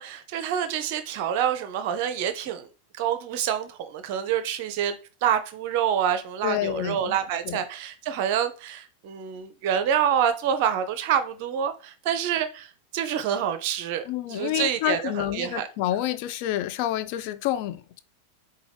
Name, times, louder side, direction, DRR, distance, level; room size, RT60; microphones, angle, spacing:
voice 1, 0.0-2.7 3.0-15.7, right 9 dB, 45° right, 0.5 m, -27 dB
voice 2, 6.4-7.2 7.5-7.6 14.1-18.0, left 13 dB, 45° left, 0.3 m, -28 dB
4.7 x 2.2 x 3.3 m
figure-of-eight pair, 90°, 0 cm